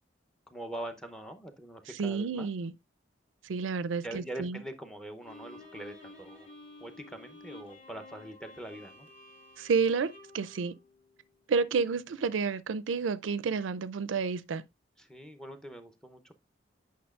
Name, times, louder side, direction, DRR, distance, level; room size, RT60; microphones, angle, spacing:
voice 1, 0.5-2.5 4.0-6.5 6.8-9.1 15.0-16.3, right 1 dB, 5° left, 0.7 m, -43 dB
voice 2, 2.0-2.7 3.5-4.6 9.6-10.1 10.3-10.7 11.5-14.6, right 5 dB, 90° right, 0.4 m, -30 dB
Bowed string instrument, 5.2-11.5, left 2 dB, 45° left, 2.1 m, -52 dB
8.6 x 5.6 x 2.4 m
head